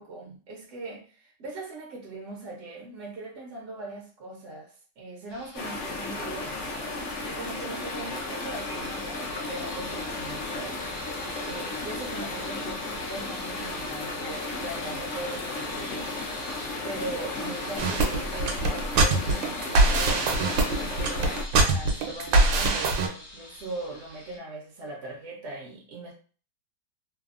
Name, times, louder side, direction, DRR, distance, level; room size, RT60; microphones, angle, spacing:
voice 1, 0.0-6.6 6.9-10.8 11.5-16.1 16.8-26.1, right 2 dB, 70° right, 0.6 m, -40 dB
sound 1, 5.3-24.4, left 2 dB, 60° left, 0.9 m, -45 dB
sound 2, 5.5-21.4, left 2 dB, 75° left, 0.6 m, -34 dB
sound 3, 17.8-23.1, right 3 dB, 90° right, 1.3 m, -23 dB
3.3 x 2.0 x 2.4 m
omnidirectional pair, 2.0 m